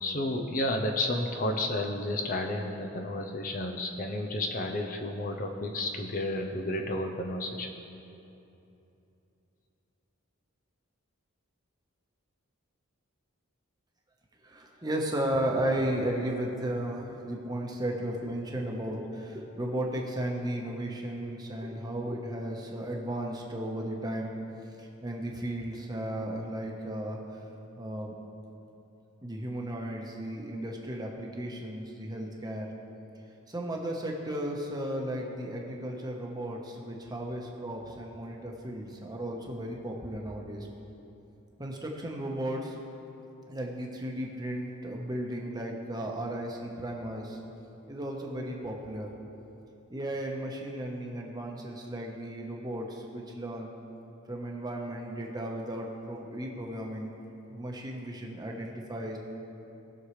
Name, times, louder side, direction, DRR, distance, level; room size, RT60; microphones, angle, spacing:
voice 1, 0.0-7.7, left 1 dB, 40° left, 3 dB, 0.7 m, -31 dB
voice 2, 14.4-24.3 24.8-27.2 27.8-28.2 29.2-32.7 33.5-40.7 41.6-42.8 43.5-47.4 47.9-49.1 49.9-53.7 54.3-57.2 57.5-59.2, right 1 dB, 20° right, 0 dB, 1.1 m, -35 dB
19.5 x 6.5 x 3.2 m, 2.9 s
head